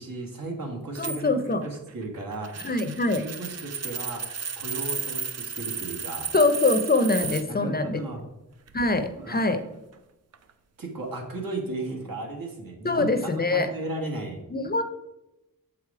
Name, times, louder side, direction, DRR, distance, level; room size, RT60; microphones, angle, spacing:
voice 1, 0.0-2.7 3.2-6.3 7.5-8.2 9.2-9.4 10.8-14.4, right 2 dB, 75° right, 1 dB, 1.7 m, -35 dB
sound 1, 0.9-7.4 8.7-9.3 10.3-10.5, right 6 dB, 50° right, 0.5 m, -34 dB
voice 2, 1.0-1.6 2.6-3.2 6.3-8.0 8.7-9.6 12.8-13.7 14.5-14.8, left 2 dB, 30° left, 8 dB, 0.5 m, -24 dB
7.1 x 4.8 x 4.7 m, 0.94 s
wide cardioid pair, 140°, 34 cm